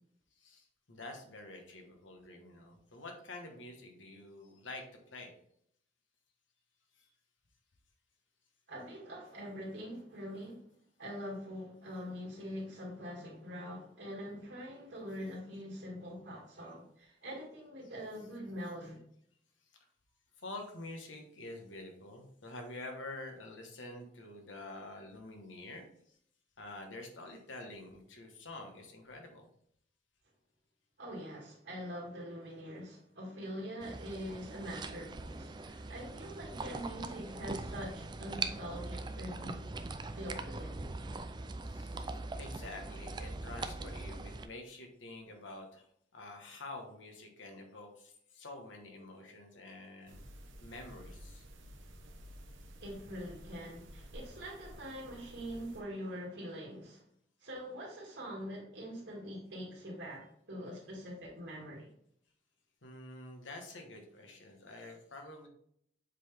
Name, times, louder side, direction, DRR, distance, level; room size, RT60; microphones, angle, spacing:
voice 1, 0.4-5.3 7.0-7.1 20.4-26.2 26.6-29.5 41.6-50.2 50.6-51.4 62.8-65.5, left 2 dB, 90° left, 1.3 m, -48 dB
voice 2, 8.7-10.6 11.0-19.0 31.0-39.6 40.1-40.8 52.8-57.0 57.4-61.9, equal, 70° right, 2.0 m, -44 dB
sound 1, 33.8-44.5, right 3 dB, 25° right, 0.3 m, -41 dB
sound 2, 50.1-55.8, equal, 90° right, 1.1 m, -52 dB
7.3 x 3.9 x 3.4 m
head